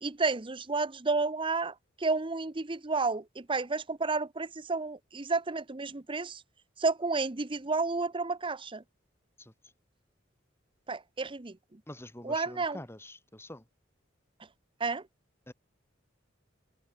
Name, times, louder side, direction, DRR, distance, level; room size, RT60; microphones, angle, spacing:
voice 1, 0.0-6.4 6.8-8.8 10.9-11.8 12.2-12.8 14.8-15.0, right 3 dB, 25° right, 0.9 m, -31 dB
voice 2, 11.9-13.7 15.5-15.6, left 1 dB, 15° left, 3.7 m, -46 dB
open air
head